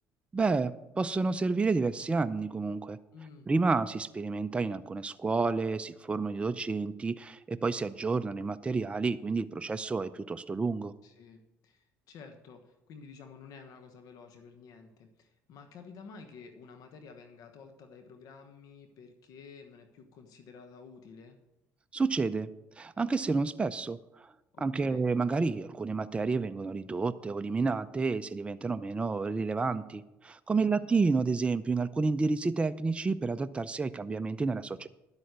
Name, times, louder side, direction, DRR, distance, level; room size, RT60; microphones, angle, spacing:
voice 1, 0.3-3.0 3.5-10.9 21.9-22.5 22.8-24.3 24.6-34.9, right 4 dB, 15° right, 11 dB, 0.5 m, -30 dB
voice 2, 3.1-3.5 11.0-21.4 24.5-25.0 30.6-30.9, left 5 dB, 70° left, 6 dB, 1.2 m, -51 dB
10.5 x 8.1 x 6.6 m, 0.95 s
supercardioid pair, 90°, 7 cm